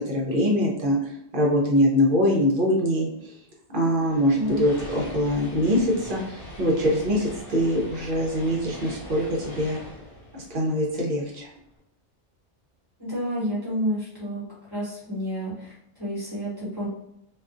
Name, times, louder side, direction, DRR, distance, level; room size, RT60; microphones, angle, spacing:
voice 1, 0.0-3.4 3.7-9.8 10.3-11.5, equal, 55° right, -2 dB, 0.8 m, -23 dB
sound 1, 4.0-11.4, left 1 dB, 35° left, 1.3 m, -42 dB
voice 2, 4.3-4.6 13.0-14.4 14.7-16.9, equal, 20° right, -7 dB, 1.0 m, -30 dB
2.4 x 2.3 x 2.4 m, 0.78 s
omnidirectional pair, 1.2 m